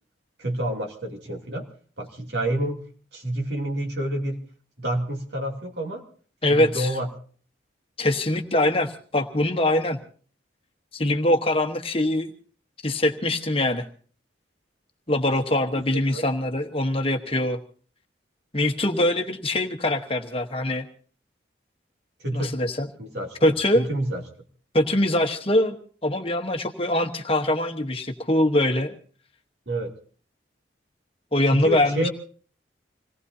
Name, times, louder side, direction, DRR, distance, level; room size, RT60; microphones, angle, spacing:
voice 1, 0.4-1.7 2.0-2.8 3.1-4.4 4.8-6.0 6.5-7.1 16.1-16.2 22.2-22.5 23.0-24.2 29.7-29.9 31.5-32.1, right 1 dB, 60° right, 1 dB, 2.7 m, -28 dB
voice 2, 6.4-6.9 8.0-10.0 10.9-12.3 12.8-13.8 15.1-17.6 18.5-20.8 22.3-22.9 23.4-23.8 24.7-25.7 26.0-28.9 31.3-32.1, left 1 dB, 30° left, 5 dB, 1.1 m, -23 dB
26.5 x 18.5 x 2.7 m, 0.43 s
head